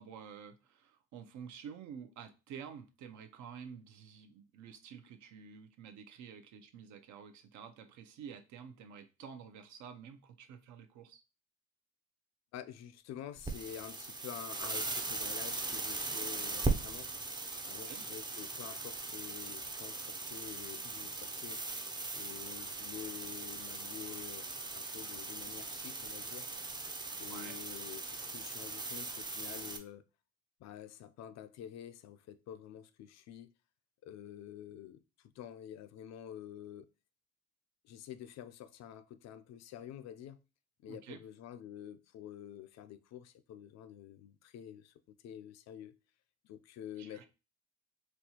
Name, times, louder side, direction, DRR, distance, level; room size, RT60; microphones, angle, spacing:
voice 1, 0.0-11.2 17.9-18.0 27.3-27.6 40.9-41.2 47.0-47.3, right 7 dB, 65° right, 0.6 m, -50 dB
voice 2, 12.5-17.1 17.6-21.6 22.1-26.6 27.2-30.0 30.6-33.5 34.0-36.9 37.8-40.4 40.8-44.9 45.2-46.0 46.4-47.3, left 10 dB, 60° left, 0.4 m, -48 dB
sound 1, 13.4-29.8, right 3 dB, 15° right, 0.4 m, -39 dB
4.3 x 2.3 x 2.8 m
cardioid pair, 105°, 31 cm